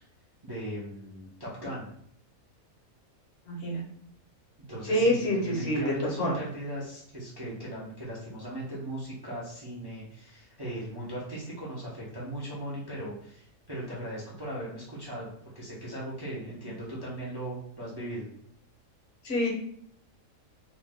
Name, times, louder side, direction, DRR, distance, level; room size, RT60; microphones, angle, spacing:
voice 1, 0.4-1.9 4.7-15.3 15.5-18.3, right 1 dB, 40° right, -6 dB, 0.3 m, -38 dB
voice 2, 3.5-3.8 4.9-6.3 19.2-19.5, equal, 60° left, -1 dB, 1.0 m, -26 dB
2.7 x 2.1 x 3.3 m, 0.68 s
omnidirectional pair, 1.5 m